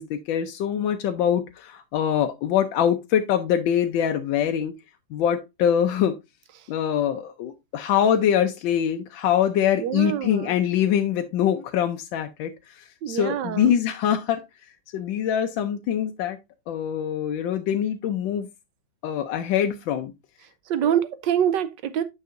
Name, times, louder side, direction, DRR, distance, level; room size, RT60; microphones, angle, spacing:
voice 1, 0.0-4.7 5.1-6.1 6.7-14.4 14.9-16.4 16.7-18.5 19.0-20.1, left 9 dB, 75° left, 1.3 m, -24 dB
voice 2, 9.8-10.5 13.0-13.7 20.7-22.0, right 9 dB, 70° right, 1.2 m, -25 dB
9.3 x 5.8 x 2.5 m
omnidirectional pair, 2.2 m